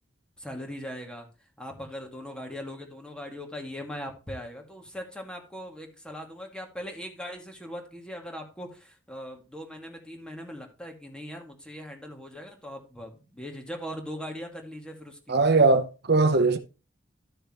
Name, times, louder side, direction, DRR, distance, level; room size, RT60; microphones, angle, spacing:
voice 1, 0.4-1.3 1.6-15.4, equal, 5° left, 2.1 m, -40 dB
voice 2, 15.3-16.6, right 3 dB, 60° right, 0.8 m, -20 dB
13.0 x 6.6 x 3.0 m
head